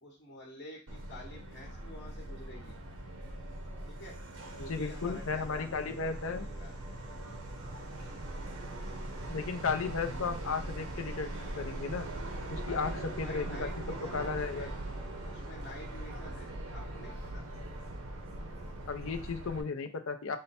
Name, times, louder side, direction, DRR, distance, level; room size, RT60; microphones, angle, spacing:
voice 1, 0.0-2.7 3.9-4.2 4.6-6.7 12.6-14.8 15.2-17.5, left 2 dB, 50° left, -1 dB, 1.0 m, -49 dB
Subway metro underground, 0.9-19.6, right 1 dB, 80° right, 0.9 m, -41 dB
voice 2, 4.7-6.5 9.3-11.3 11.6-12.1 12.5-12.9 13.2-13.7 14.1-14.7 18.9-20.4, left 5 dB, 70° left, 8 dB, 0.6 m, -34 dB
sound 1, 5.0-19.2, right 1 dB, 5° right, 0.7 m, -54 dB
5.5 x 2.2 x 4.2 m, 0.33 s
head